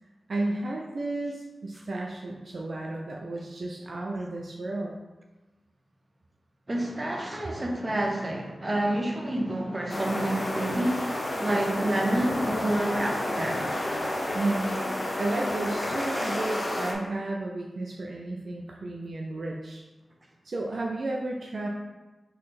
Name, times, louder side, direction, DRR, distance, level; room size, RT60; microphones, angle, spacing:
voice 1, 0.3-4.9 14.3-14.8 15.2-19.8 20.4-21.7, right 2 dB, 55° right, -1 dB, 0.4 m, -32 dB
voice 2, 6.7-13.7, right 1 dB, 25° right, 1 dB, 0.7 m, -28 dB
sound 1, 9.9-16.9, left 1 dB, 30° left, 0.6 m, -30 dB
3.9 x 3.2 x 4.1 m, 1.2 s
wide cardioid pair, 110°, 0 cm